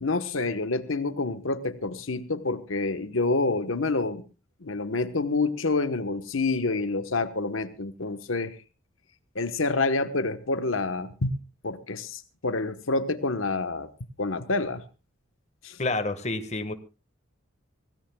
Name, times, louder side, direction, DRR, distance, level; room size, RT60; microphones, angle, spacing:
voice 1, 0.0-4.2 4.6-8.5 9.3-11.3 11.6-13.9 14.2-14.8 15.6-15.8, left 3 dB, 80° left, 10 dB, 1.2 m, -28 dB
voice 2, 15.8-16.7, left 2 dB, 35° left, 9 dB, 1.5 m, -28 dB
25.0 x 17.0 x 2.3 m, 0.31 s
head